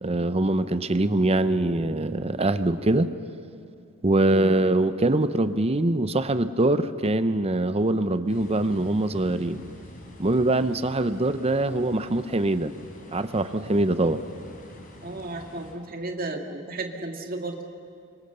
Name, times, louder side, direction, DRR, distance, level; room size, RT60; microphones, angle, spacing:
voice 1, 0.0-3.1 4.0-9.6 10.2-12.7 13.1-14.2, right 2 dB, 30° right, 12 dB, 0.7 m, -23 dB
voice 2, 4.2-4.5 15.0-17.6, right 2 dB, 45° right, 4 dB, 1.9 m, -34 dB
sound 1, 8.3-15.7, left 1 dB, 40° left, 4.0 m, -46 dB
28.5 x 25.0 x 6.9 m, 2.4 s
head